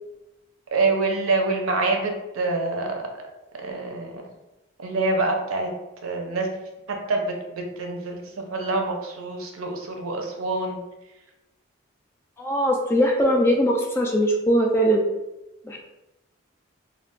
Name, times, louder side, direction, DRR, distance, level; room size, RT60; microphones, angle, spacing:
voice 1, 0.7-3.0 3.6-4.2 4.8-5.7 6.0-6.5 6.9-8.2 8.5-10.8, right 3 dB, 90° right, 2 dB, 0.6 m, -26 dB
voice 2, 12.4-15.0 15.7-15.8, equal, 10° left, 0 dB, 0.3 m, -20 dB
2.4 x 2.2 x 3.5 m, 0.99 s
head